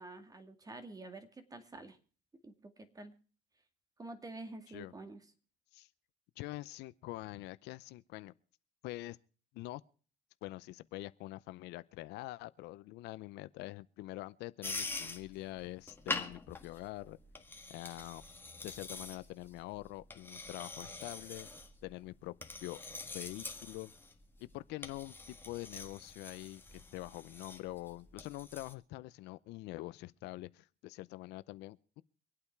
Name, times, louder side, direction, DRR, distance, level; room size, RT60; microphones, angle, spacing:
voice 1, 0.0-2.0 2.4-3.1 4.0-5.2, right 2 dB, 20° right, 2.2 m, -48 dB
voice 2, 6.4-8.3 8.8-9.2 9.5-9.8 10.4-17.2 17.7-18.2 18.6-21.5 21.8-22.3 22.6-22.8 23.1-23.9 24.4-32.0, left 18 dB, 90° left, 0.6 m, -45 dB
sound 1, 14.6-28.7, left 3 dB, 15° left, 1.7 m, -45 dB
25.0 x 8.8 x 4.7 m
cardioid pair, 110°, 17 cm